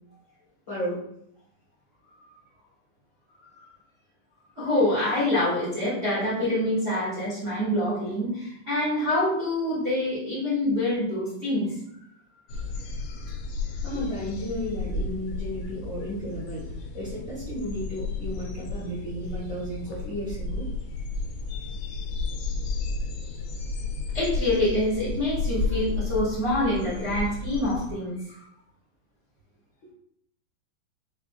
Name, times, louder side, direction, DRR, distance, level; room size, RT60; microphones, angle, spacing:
voice 1, 0.7-1.0 13.8-20.7 29.8-29.9, equal, 65° left, -9 dB, 1.1 m, -33 dB
voice 2, 4.6-11.7 24.1-28.3, left 1 dB, 35° right, -10 dB, 1.1 m, -26 dB
sound 1, 12.5-27.9, left 3 dB, 90° left, 1.8 m, -32 dB
6.2 x 3.5 x 2.4 m, 0.72 s
omnidirectional pair, 4.5 m